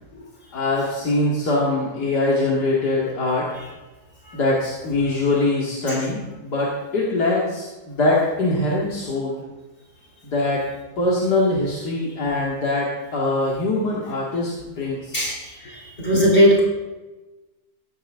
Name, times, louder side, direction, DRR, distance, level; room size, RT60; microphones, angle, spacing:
voice 1, 0.5-3.5 4.3-9.4 10.2-10.6 11.0-15.2 16.1-16.3, left 2 dB, 80° left, -4 dB, 2.9 m, -23 dB
voice 2, 16.0-16.6, equal, 35° left, -3 dB, 4.5 m, -16 dB
16.5 x 14.5 x 3.7 m, 1.1 s
omnidirectional pair, 1.7 m